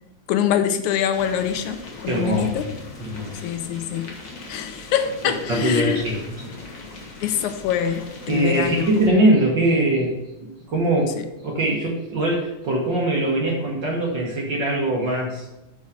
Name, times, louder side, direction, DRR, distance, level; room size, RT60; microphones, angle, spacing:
voice 1, 0.3-2.7 3.4-4.1 4.5-6.0 7.2-8.8, left 9 dB, 85° left, 8 dB, 2.1 m, -24 dB
sound 1, 1.1-9.1, left 3 dB, 60° left, 0.8 m, -39 dB
voice 2, 2.1-2.5 3.0-3.3 5.5-6.2 8.3-10.2 10.4-11.1 11.4-15.4, right 1 dB, 50° right, -2 dB, 1.6 m, -21 dB
6.3 x 5.6 x 6.2 m, 0.96 s
omnidirectional pair, 3.4 m